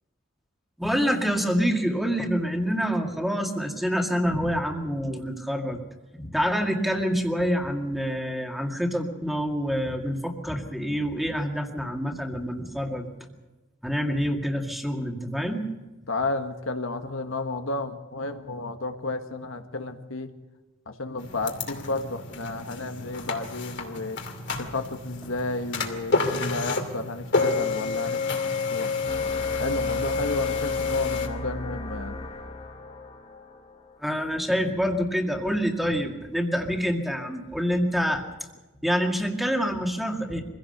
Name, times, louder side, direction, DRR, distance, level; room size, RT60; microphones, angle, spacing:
voice 1, 0.8-5.8 6.1-13.1 13.8-15.7 34.0-38.2 38.8-40.4, equal, ahead, 2 dB, 2.1 m, -26 dB
voice 2, 16.1-20.3 20.9-24.2 24.6-28.4 28.7-28.9 29.6-32.2, left 2 dB, 85° left, 6 dB, 1.5 m, -32 dB
sound 1, 21.2-31.3, left 4 dB, 60° left, 2.7 m, -29 dB
sound 2, 29.1-34.3, left 1 dB, 35° left, 1.6 m, -37 dB
24.0 x 16.5 x 6.7 m, 1.1 s
head